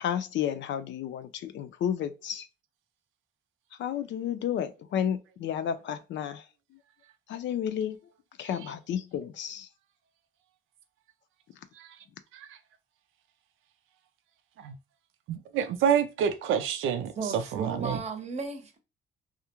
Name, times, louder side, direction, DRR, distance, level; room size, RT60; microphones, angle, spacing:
voice 1, 0.0-2.5 3.8-6.4 7.3-8.0 8.4-9.7, left 9 dB, 65° left, 0.4 m, -31 dB
voice 2, 15.3-18.0, right 8 dB, 85° right, 0.5 m, -28 dB
voice 3, 17.2-18.8, right 4 dB, 35° right, 0.7 m, -35 dB
2.4 x 2.1 x 2.8 m
cardioid pair, 90°, 20 cm